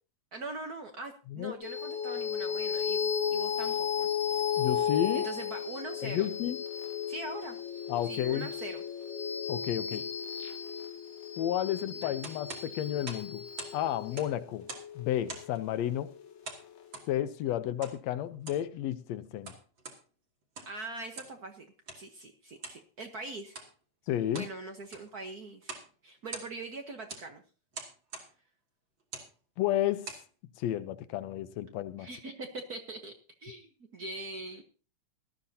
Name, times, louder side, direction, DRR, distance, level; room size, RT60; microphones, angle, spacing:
voice 1, 0.3-4.1 5.1-6.3 7.1-7.6 8.1-8.8 9.9-10.0 11.9-12.1 20.7-21.7 22.0-23.6 24.3-25.7 26.0-27.4 32.0-33.1 33.4-34.6, right 2 dB, 60° right, 1.0 m, -42 dB
sound 1, 1.6-16.4, left 8 dB, 90° left, 3.0 m, -34 dB
voice 2, 4.6-5.3 6.0-6.6 7.9-8.5 9.5-10.1 11.4-13.4 13.7-14.7 15.0-16.1 17.1-19.5 24.1-24.5 29.6-30.1 30.6-32.1, left 11 dB, 75° left, 1.9 m, -32 dB
sound 2, 12.2-13.8 14.0-14.9 15.3-15.6 16.4-17.1 17.8-18.0 18.3-18.7 19.2-20.0 20.4-20.8 21.1-21.4 21.9-22.0 22.6-22.8 23.5-23.7 24.1-24.5 24.8-25.1 25.6-25.9 26.2-26.7 27.1-27.3 27.7-28.3 29.0-29.3 29.8-30.3, right 3 dB, 40° right, 3.0 m, -44 dB
18.5 x 13.0 x 2.8 m
omnidirectional pair, 3.3 m